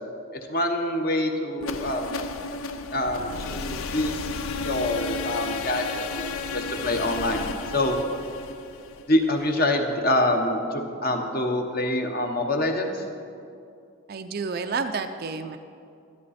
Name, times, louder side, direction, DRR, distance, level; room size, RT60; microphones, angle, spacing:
voice 1, 0.5-2.2 2.9-4.3 4.6-6.2 6.5-8.0 9.1-13.0, left 1 dB, 45° left, 4 dB, 1.0 m, -26 dB
sound 1, 1.6-9.5, left 4 dB, 80° left, 0.5 m, -33 dB
voice 2, 14.1-15.6, right 4 dB, 45° right, 8 dB, 0.4 m, -30 dB
12.0 x 12.0 x 4.2 m, 2.5 s
head